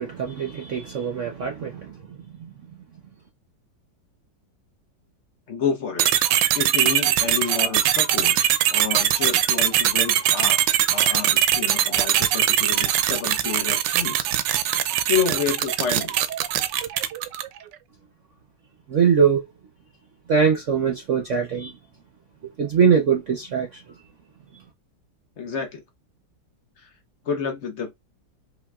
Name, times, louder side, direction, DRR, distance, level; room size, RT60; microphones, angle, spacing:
voice 1, 0.0-2.5 18.9-19.5 20.3-21.7 22.6-23.8, right 6 dB, 55° right, 0.8 m, -22 dB
voice 2, 5.5-6.2 6.5-10.7 10.9-14.6 15.1-16.1 25.4-25.8 27.2-27.9, left 6 dB, 50° left, 1.0 m, -29 dB
sound 1, 6.0-17.6, right 11 dB, 75° right, 1.2 m, -21 dB
5.0 x 2.9 x 2.3 m
omnidirectional pair, 2.0 m